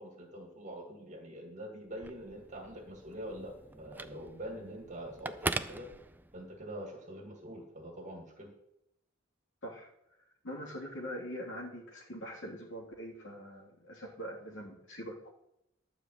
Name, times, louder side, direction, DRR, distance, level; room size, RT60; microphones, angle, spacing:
voice 1, 0.0-5.9 6.3-8.5, equal, 40° right, 2 dB, 1.8 m, -45 dB
Telephone, 1.9-6.6, right 2 dB, 10° right, 0.4 m, -41 dB
voice 2, 10.4-15.3, equal, 70° left, -2 dB, 3.1 m, -43 dB
11.5 x 5.1 x 7.6 m, 0.80 s
head